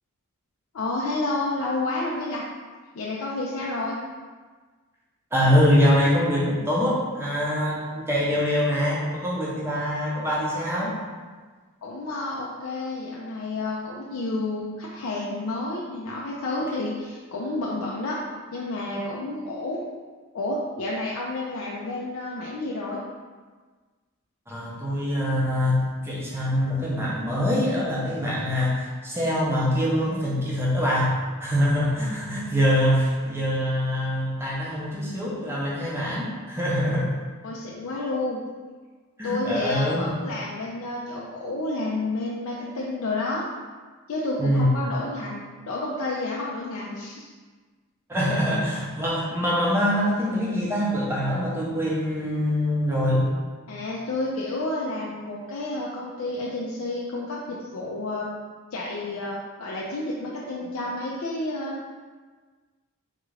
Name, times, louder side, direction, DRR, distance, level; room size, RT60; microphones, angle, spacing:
voice 1, 0.7-2.4 2.9-4.0 11.8-18.2 18.5-19.8 20.3-23.0 37.4-38.4 39.2-43.4 44.1-47.3 53.7-58.3 58.7-61.8, left 2 dB, 65° left, -4 dB, 0.4 m, -30 dB
voice 2, 5.3-10.9 24.5-37.2 39.2-40.1 44.4-44.7 48.1-53.3, equal, 10° right, -6 dB, 0.6 m, -24 dB
3.7 x 2.4 x 3.1 m, 1.4 s
head